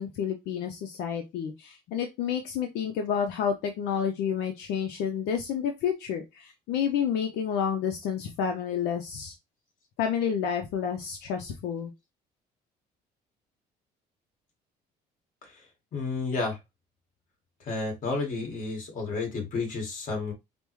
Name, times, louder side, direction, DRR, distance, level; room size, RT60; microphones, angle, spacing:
voice 1, 0.0-9.3 10.0-11.9, left 7 dB, 80° left, 5 dB, 0.6 m, -30 dB
voice 2, 15.9-16.6 17.6-20.3, left 3 dB, 50° left, 2 dB, 1.9 m, -31 dB
5.1 x 2.1 x 3.0 m, 0.22 s
cardioid pair, 110°, 17 cm